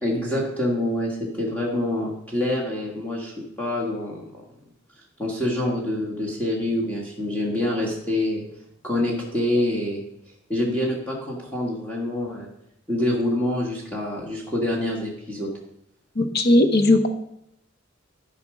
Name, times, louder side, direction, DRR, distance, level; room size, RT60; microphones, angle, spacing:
voice 1, 0.0-4.4 5.2-8.4 8.8-10.0 10.5-12.5 12.9-15.5, left 1 dB, 10° left, -4 dB, 1.6 m, -26 dB
voice 2, 16.2-17.1, left 1 dB, 50° left, 8 dB, 0.9 m, -17 dB
12.5 x 5.1 x 4.9 m, 0.77 s
head